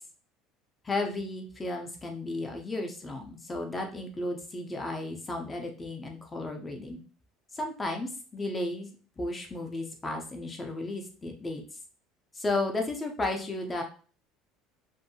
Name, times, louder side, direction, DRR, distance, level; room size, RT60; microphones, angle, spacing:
voice 1, 0.8-7.0 7.5-8.9 9.2-11.6 12.3-13.8, left 2 dB, 15° left, 3 dB, 0.6 m, -33 dB
2.6 x 2.6 x 2.7 m, 0.40 s
cardioid pair, 140°, 0 cm